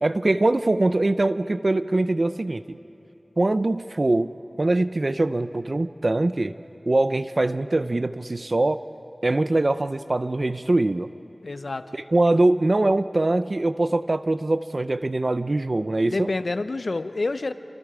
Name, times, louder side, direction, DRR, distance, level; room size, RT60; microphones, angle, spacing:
voice 1, 0.0-2.8 3.4-4.3 4.6-6.5 6.9-8.8 9.2-11.1 12.1-16.3, right 2 dB, 55° right, 12 dB, 0.5 m, -22 dB
voice 2, 11.4-11.9 16.1-17.5, left 3 dB, 80° left, 11 dB, 0.7 m, -28 dB
28.5 x 25.5 x 5.0 m, 2.9 s
wide cardioid pair, 55°, 0 cm